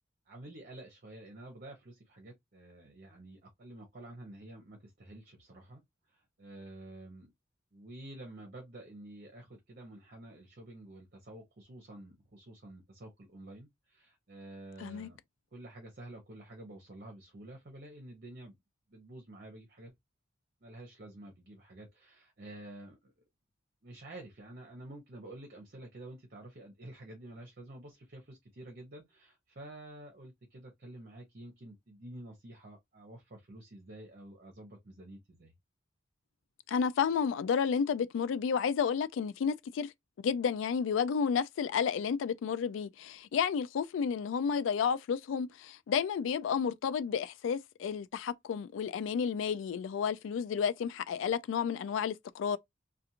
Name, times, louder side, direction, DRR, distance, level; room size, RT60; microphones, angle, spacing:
voice 1, 0.3-5.8 6.1-7.3 7.7-15.2 15.5-18.5 18.9-19.9 20.6-23.1 23.8-35.5, right 1 dB, 50° right, 0.8 m, -49 dB
voice 2, 36.7-39.9 40.2-52.6, left 6 dB, 75° left, 0.3 m, -31 dB
2.4 x 2.3 x 2.8 m
head